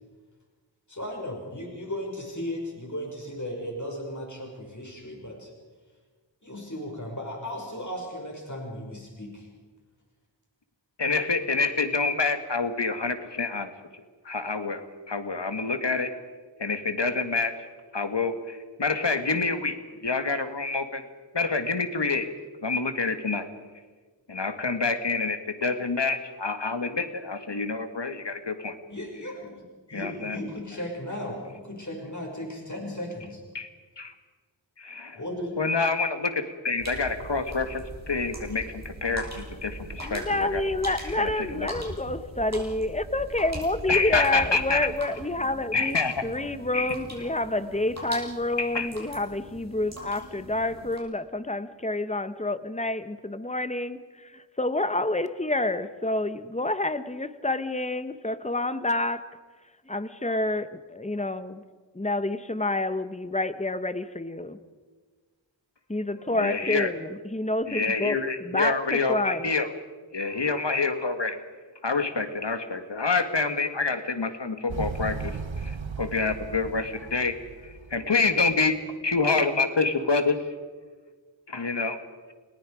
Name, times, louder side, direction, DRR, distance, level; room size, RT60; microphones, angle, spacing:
voice 1, 0.9-5.5 6.4-9.5 28.9-29.6 29.9-33.4 35.1-35.6, left 1 dB, 40° left, 0 dB, 5.9 m, -36 dB
voice 2, 11.0-13.7 14.3-14.8 15.1-16.1 16.6-17.5 17.9-19.8 20.0-21.0 21.3-22.3 22.6-23.5 24.3-28.8 29.9-30.4 33.5-33.7 34.0-34.1 34.8-35.2 35.6-40.6 41.2-41.7 43.9-44.9 45.7-46.2 46.7-47.0 48.6-48.9 66.3-66.9 67.7-69.7 70.1-71.4 71.8-77.3 77.9-78.8 79.0-80.4 81.5-82.0, left 4 dB, 65° left, 8 dB, 2.0 m, -27 dB
sound 1, 36.8-51.0, right 1 dB, 35° right, 6.1 m, -41 dB
voice 3, 40.0-59.2 59.9-61.6 61.9-64.6 65.9-69.5, left 2 dB, 15° left, 12 dB, 1.2 m, -28 dB
Motorcycle, 74.7-78.6, right 5 dB, 80° right, 1.1 m, -36 dB
29.5 x 19.0 x 5.0 m, 1.4 s
wide cardioid pair, 40°, 45 cm